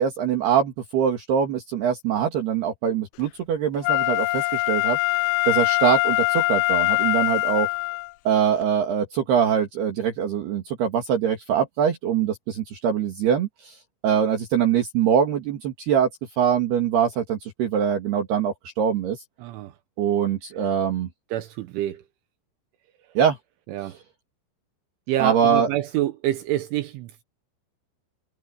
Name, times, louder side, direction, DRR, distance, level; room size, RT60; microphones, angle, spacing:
voice 1, 0.0-5.0 5.5-7.7 8.3-13.8 14.0-16.1 16.4-19.2 20.0-21.1 23.2-23.4 25.2-25.7, right 8 dB, 60° right, 4.0 m, -23 dB
Wind instrument woodwind instrument, 3.8-8.1 8.6-8.7, left 26 dB, 85° left, 3.1 m, -23 dB
voice 2, 19.4-19.8 20.6-20.7 21.3-22.1 23.7-24.0 25.1-27.2, right 13 dB, 75° right, 3.4 m, -27 dB
omnidirectional pair, 5.7 m